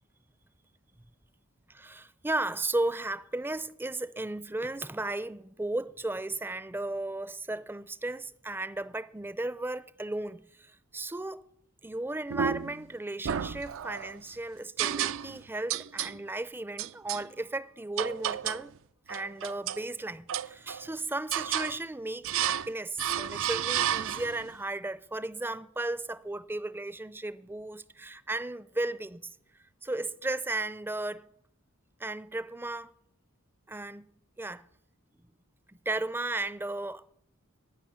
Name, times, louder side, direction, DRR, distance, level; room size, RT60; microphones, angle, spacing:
voice 1, 1.7-11.4 11.8-18.7 19.1-29.2 29.8-31.3 32.0-32.9 33.7-34.1 34.4-34.6 35.7-37.0, right 2 dB, 10° right, 0.5 m, -35 dB
sound 1, 12.3-12.8 13.2-14.1 14.8-15.4 15.7-16.2 16.8-17.2 18.0-18.7 19.1-19.8 20.3-20.9 21.3-21.8 22.2-22.7 23.0-24.5, right 10 dB, 65° right, 0.4 m, -32 dB
11.0 x 9.8 x 8.9 m
head